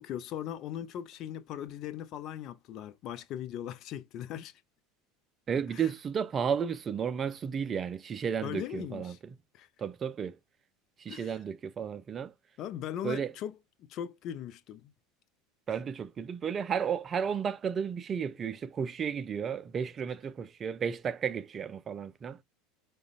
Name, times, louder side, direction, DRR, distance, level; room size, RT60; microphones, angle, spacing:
voice 1, 0.0-4.5 8.4-9.2 9.5-9.7 11.1-11.3 12.6-13.6 13.9-14.9, left 10 dB, 45° left, 0.4 m, -39 dB
voice 2, 5.5-9.4 9.8-10.4 11.0-12.3 13.0-13.3 15.7-22.4, right 7 dB, 30° right, 0.4 m, -33 dB
4.8 x 2.1 x 2.4 m
figure-of-eight pair, 70°, 0 cm